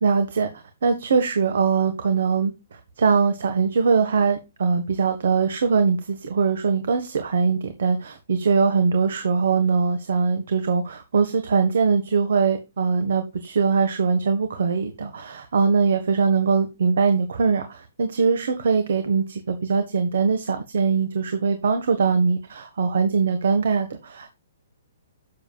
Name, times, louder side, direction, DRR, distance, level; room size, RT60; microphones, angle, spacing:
voice 1, 0.0-24.3, right 5 dB, 70° right, 8 dB, 1.4 m, -22 dB
10.0 x 7.4 x 2.4 m, 0.26 s
hypercardioid pair, 165°, 0 cm